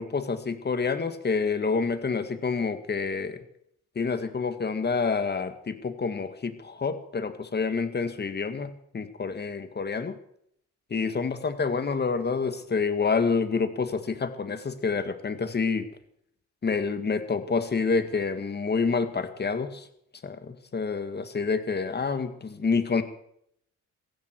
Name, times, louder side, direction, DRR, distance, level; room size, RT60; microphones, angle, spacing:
voice 1, 0.0-3.4 4.0-10.2 10.9-15.9 16.6-19.9 20.2-23.0, left 4 dB, 35° left, 10 dB, 2.0 m, -28 dB
17.0 x 15.5 x 4.7 m, 0.70 s
cardioid pair, 90°, 30 cm